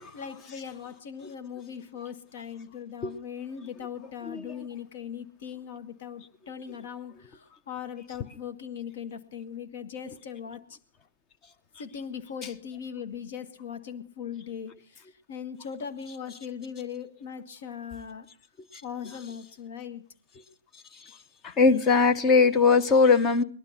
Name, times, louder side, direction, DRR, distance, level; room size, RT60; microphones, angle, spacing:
voice 1, 0.0-10.7 11.8-15.0 15.3-18.3 18.8-20.0, left 8 dB, 50° left, 1.6 m, -39 dB
voice 2, 21.4-23.4, left 4 dB, 20° left, 1.0 m, -20 dB
19.0 x 12.0 x 5.8 m
hypercardioid pair, 130°, 0 cm